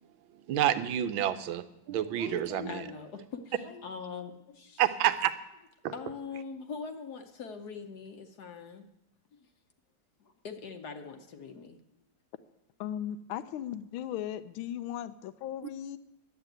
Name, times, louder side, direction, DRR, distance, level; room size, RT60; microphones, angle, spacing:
voice 1, 0.5-2.9 4.8-5.3 5.8-5.9, right 11 dB, 75° right, 12 dB, 1.5 m, -28 dB
voice 2, 2.2-4.8 5.9-8.9 10.2-11.8, left 5 dB, 60° left, 6 dB, 1.3 m, -42 dB
voice 3, 12.8-16.0, left 10 dB, 80° left, 13 dB, 1.5 m, -37 dB
11.5 x 8.2 x 9.1 m, 0.86 s
omnidirectional pair, 2.2 m